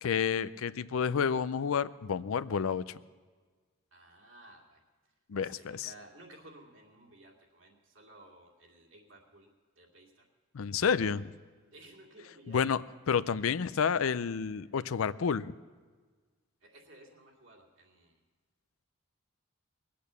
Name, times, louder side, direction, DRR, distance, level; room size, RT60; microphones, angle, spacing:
voice 1, 0.0-3.0 5.3-5.9 10.5-11.3 12.5-12.8 13.1-15.5, left 6 dB, 75° left, 15 dB, 0.5 m, -30 dB
voice 2, 3.9-4.8 5.4-9.5 9.8-10.3 11.7-12.6 16.6-18.2, right 1 dB, 65° right, -1 dB, 2.5 m, -55 dB
21.0 x 8.5 x 6.9 m, 1.4 s
head